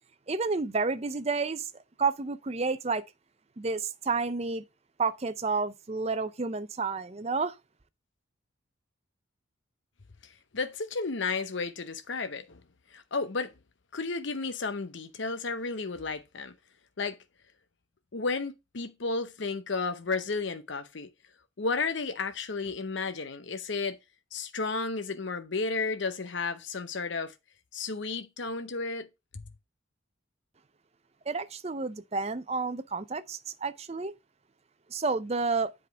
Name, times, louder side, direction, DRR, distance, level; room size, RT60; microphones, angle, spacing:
voice 1, 0.3-1.7 2.0-3.0 3.6-4.6 5.0-7.6 31.3-34.1 34.9-35.7, right 4 dB, 30° right, 0.6 m, -30 dB
voice 2, 10.5-12.6 12.9-13.5 13.9-16.5 17.0-17.2 18.1-21.1 21.6-24.0 24.3-27.3 27.7-29.1, left 4 dB, 60° left, 0.7 m, -32 dB
8.2 x 5.1 x 4.5 m
head